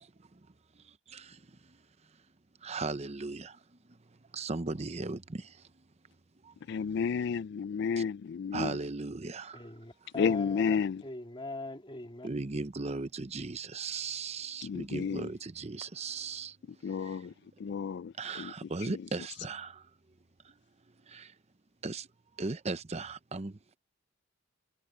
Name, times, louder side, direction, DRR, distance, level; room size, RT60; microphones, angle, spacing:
voice 1, 2.6-3.6 4.3-5.5 8.5-9.6 12.2-16.6 17.0-17.2 18.2-19.8 21.1-21.3 21.8-22.1 22.4-23.8, right 3 dB, 35° right, 0.8 m, -37 dB
voice 2, 6.7-8.8 10.2-11.0 14.6-15.3 16.8-18.5 18.9-19.1, left 6 dB, 60° left, 0.3 m, -32 dB
voice 3, 9.5-10.8 11.0-12.3, left 2 dB, 25° left, 2.5 m, -41 dB
head